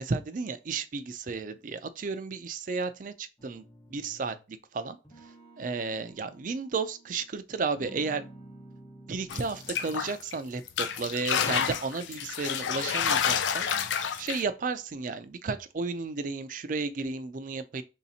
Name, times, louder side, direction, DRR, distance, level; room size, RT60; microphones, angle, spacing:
voice 1, 0.0-3.6 3.9-5.0 5.6-8.3 9.1-13.7 14.2-17.8, right 4 dB, 45° right, 0.4 m, -33 dB
sound 1, 3.4-4.5 5.0-7.3 7.7-10.3, right 1 dB, 20° left, 1.0 m, -51 dB
sound 2, 9.3-10.3 10.7-14.4, left 8 dB, 85° left, 0.4 m, -29 dB
3.2 x 2.8 x 4.1 m
head